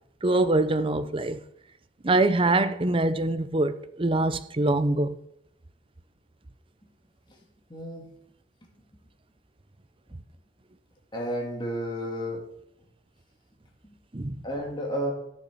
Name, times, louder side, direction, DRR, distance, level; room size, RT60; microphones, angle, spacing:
voice 1, 0.2-1.4 2.0-5.2 14.1-14.4, right 2 dB, 30° right, 0.7 m, -24 dB
voice 2, 7.7-8.1 8.6-8.7 11.1-12.4 13.8-13.9 14.4-15.1, equal, 25° left, 2.8 m, -32 dB
13.0 x 6.7 x 6.2 m
head